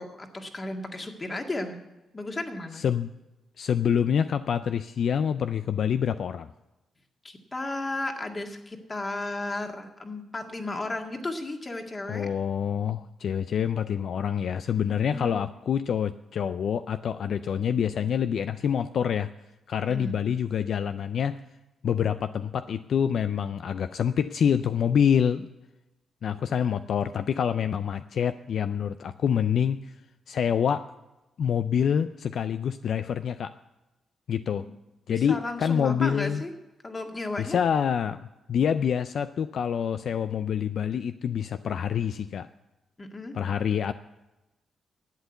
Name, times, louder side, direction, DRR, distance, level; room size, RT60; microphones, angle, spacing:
voice 1, 0.0-1.8 2.1-2.8 7.2-12.3 15.0-15.4 19.9-20.2 34.6-34.7 35.1-36.5 36.8-37.6 43.0-43.3, left 2 dB, 30° left, 3 dB, 2.0 m, -34 dB
voice 2, 2.8-3.1 3.6-6.5 12.1-19.3 19.7-21.4 21.8-25.5 26.2-29.9 30.3-30.9 31.4-33.5 34.3-34.7 35.1-36.4 37.4-42.5 43.3-43.9, left 8 dB, 70° left, 11 dB, 0.4 m, -26 dB
11.5 x 8.2 x 8.0 m, 1.0 s
cardioid pair, 70°, 0 cm